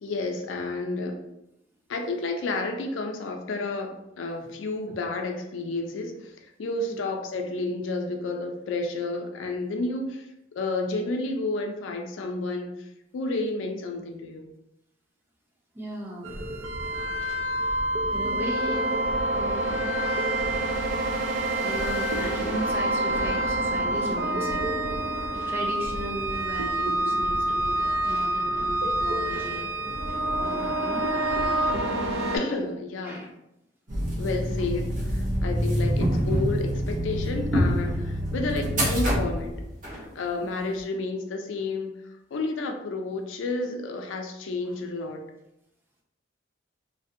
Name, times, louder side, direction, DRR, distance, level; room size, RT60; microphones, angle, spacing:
voice 1, 0.0-1.2 1.9-6.3 6.6-10.3 10.5-12.9 13.1-14.5 32.3-33.2 34.2-39.6 40.2-41.9 42.3-45.2, left 2 dB, 85° left, 4 dB, 0.4 m, -31 dB
voice 2, 15.7-16.4 18.1-20.0 20.5-20.8 21.5-24.6 25.5-27.7 28.0-29.7 30.1-31.0 33.0-33.3 37.8-38.0 39.9-40.7 44.6-44.8, right 1 dB, 10° right, -3 dB, 0.5 m, -37 dB
sound 1, 16.2-32.4, right 1 dB, 75° right, 0.4 m, -27 dB
sound 2, 33.9-40.0, equal, 45° right, 0.8 m, -26 dB
2.5 x 2.1 x 2.5 m, 0.84 s
head